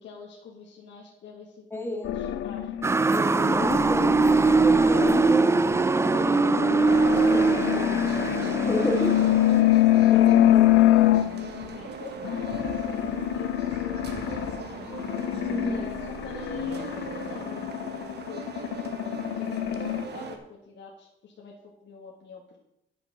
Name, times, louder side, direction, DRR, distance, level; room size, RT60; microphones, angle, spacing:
voice 1, 0.0-2.7 7.5-8.3 10.4-10.5 10.7-15.1 15.7-21.5 21.8-22.4, left 5 dB, 65° left, -2 dB, 1.7 m, -46 dB
voice 2, 1.7-2.1 3.1-5.5 5.9-6.3 7.1-7.9 8.6-9.2 10.1-10.7 15.5-15.8, left 1 dB, 10° left, 3 dB, 1.8 m, -31 dB
sound 1, 2.0-11.7 12.2-20.0, left 13 dB, 80° left, 0.6 m, -25 dB
Motor vehicle (road) / Siren, 2.8-9.6, right 3 dB, 15° right, 0.3 m, -22 dB
sound 2, 6.8-20.4, right 5 dB, 55° right, 1.3 m, -39 dB
9.6 x 5.4 x 6.3 m, 0.84 s
cardioid pair, 90°, 20 cm